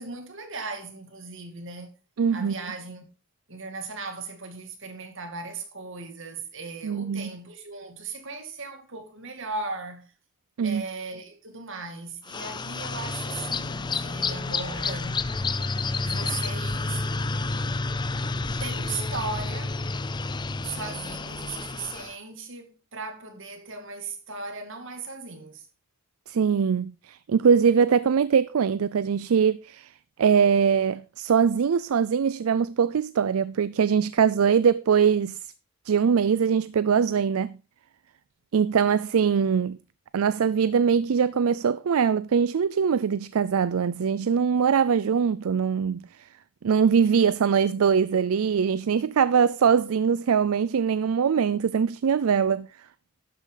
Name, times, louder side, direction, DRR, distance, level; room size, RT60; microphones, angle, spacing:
voice 1, 0.0-1.9 2.3-3.0 3.5-10.1 10.6-15.2 16.0-17.0 18.6-19.8 20.6-25.7, right 4 dB, 60° right, 2.3 m, -37 dB
voice 2, 2.2-2.6 6.8-7.3 10.6-10.8 26.3-29.9 30.2-35.4 35.9-37.6 38.5-39.8 40.1-46.1 46.6-52.7, right 6 dB, 75° right, 0.4 m, -22 dB
sound 1, 12.3-22.1, left 3 dB, 20° left, 0.4 m, -30 dB
12.0 x 8.4 x 3.9 m
head